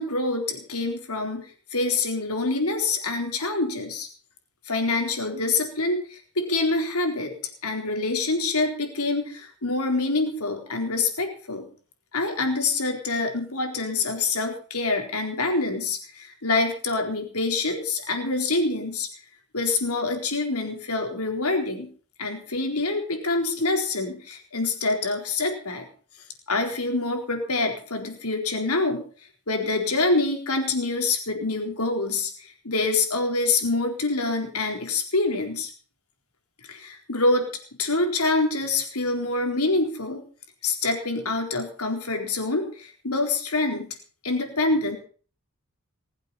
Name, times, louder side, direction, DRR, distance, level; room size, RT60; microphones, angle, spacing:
voice 1, 0.0-1.4 1.7-4.1 4.7-7.3 7.6-11.7 12.1-19.1 19.5-21.9 22.2-25.9 26.5-29.0 29.5-35.7 36.7-37.5 37.8-40.2 40.6-43.9 44.2-45.0, left 3 dB, 90° left, 3 dB, 4.1 m, -26 dB
21.0 x 8.1 x 7.0 m, 0.42 s
head